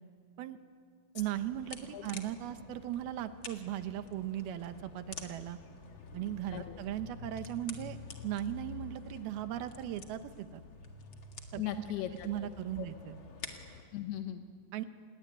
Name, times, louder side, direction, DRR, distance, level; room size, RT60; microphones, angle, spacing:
voice 1, 1.1-5.6 6.1-8.0 8.2-10.6 11.5-11.6 12.2-13.2 14.7-14.8, right 12 dB, 75° right, 10 dB, 2.8 m, -38 dB
sound 1, 1.2-13.8, left 4 dB, 40° left, 1.9 m, -48 dB
voice 2, 11.6-12.9 13.9-14.5, left 11 dB, 85° left, 6 dB, 3.1 m, -39 dB
28.0 x 20.0 x 9.7 m, 2.1 s
omnidirectional pair, 4.5 m